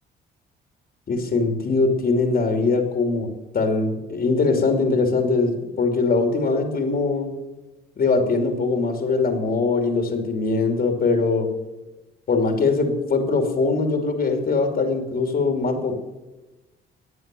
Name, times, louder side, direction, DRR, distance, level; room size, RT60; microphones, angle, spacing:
voice 1, 1.1-3.3 3.5-7.3 8.0-11.5 12.3-16.0, left 3 dB, 50° left, 4 dB, 2.9 m, -22 dB
15.5 x 9.2 x 6.9 m, 1.1 s
cardioid pair, 90°, 20 cm